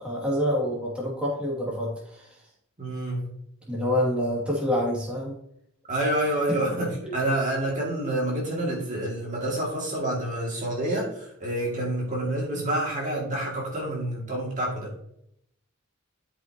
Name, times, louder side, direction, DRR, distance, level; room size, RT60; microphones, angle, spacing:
voice 1, 0.0-2.4 3.7-5.4 6.5-6.6 7.0-7.1, equal, 5° right, -5 dB, 2.5 m, -27 dB
voice 2, 2.8-3.3 5.9-14.9, right 1 dB, 35° right, -3 dB, 2.5 m, -28 dB
12.5 x 5.7 x 3.0 m, 0.72 s
head